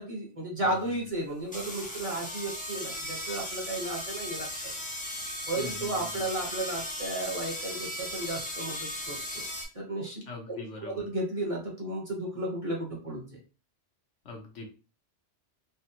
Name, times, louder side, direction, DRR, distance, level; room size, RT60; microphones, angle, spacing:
voice 1, 0.0-4.5 5.5-9.4 9.7-13.3, right 1 dB, 30° right, -3 dB, 1.0 m, -34 dB
sound 1, 0.7-0.8 1.5-9.6, left 1 dB, 10° left, 0.5 m, -37 dB
voice 2, 5.6-6.3 10.3-11.1 14.2-14.7, left 2 dB, 80° left, 1 dB, 1.2 m, -43 dB
3.4 x 2.1 x 2.8 m, 0.34 s
omnidirectional pair, 1.2 m